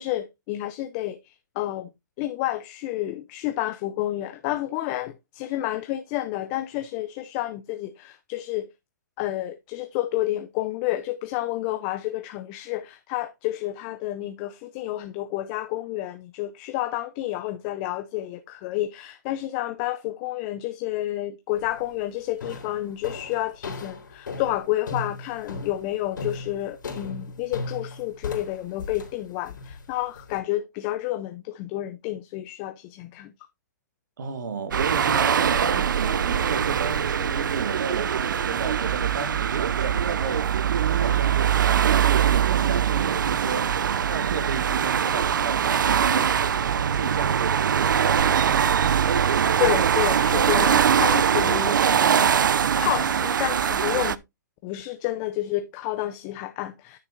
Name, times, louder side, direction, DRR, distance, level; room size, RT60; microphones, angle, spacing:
voice 1, 0.0-1.9 2.2-8.7 9.2-33.3 49.6-52.3 52.8-54.2 54.6-57.0, left 15 dB, 25° left, 0.5 m, -30 dB
sound 1, 21.6-21.9 22.4-30.4, left 3 dB, 80° left, 3.1 m, -37 dB
voice 2, 34.2-40.6 40.9-41.5 41.9-46.4 46.9-48.7, right 5 dB, 65° right, 1.8 m, -33 dB
sound 2, 34.7-54.2, right 8 dB, 85° right, 0.5 m, -22 dB
11.0 x 6.6 x 2.5 m
hypercardioid pair, 155°, 10 cm